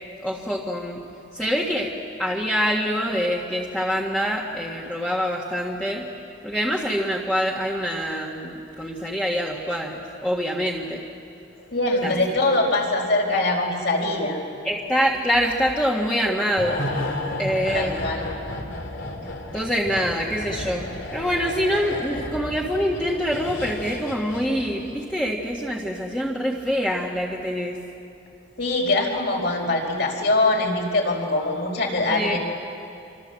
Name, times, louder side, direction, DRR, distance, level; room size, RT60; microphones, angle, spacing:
voice 1, 0.2-1.0 1.3-1.9 2.2-6.0 6.4-11.0 12.0-12.1 14.6-16.8 17.4-18.1 19.5-27.8 32.1-32.4, equal, 5° left, -4 dB, 1.7 m, -25 dB
voice 2, 11.7-14.4 17.7-18.3 28.6-32.4, left 2 dB, 60° left, 1 dB, 4.8 m, -23 dB
sound 1, 16.6-25.1 25.4-25.6, left 1 dB, 75° left, 2.9 m, -33 dB
27.5 x 25.0 x 7.7 m, 2.6 s
head